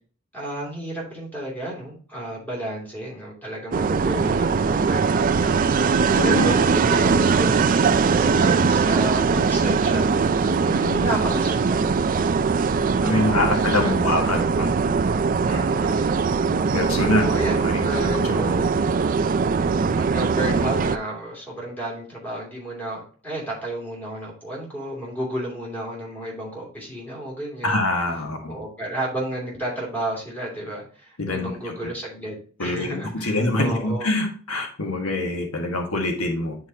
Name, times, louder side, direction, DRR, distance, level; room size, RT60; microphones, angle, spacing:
voice 1, 0.3-5.5 6.2-7.6 8.1-10.1 10.6-12.3 12.9-14.6 15.4-16.4 17.0-18.7 20.0-34.1, right 1 dB, 10° left, -3 dB, 2.8 m, -32 dB
sound 1, 3.7-21.0, right 5 dB, 40° right, 0.3 m, -21 dB
voice 2, 6.1-6.5 13.0-14.7 16.5-17.2 17.6-17.8 18.3-18.4 27.6-28.6 31.2-31.7 32.6-36.6, left 2 dB, 85° left, 2 dB, 1.5 m, -24 dB
9.8 x 4.6 x 2.8 m, 0.43 s
head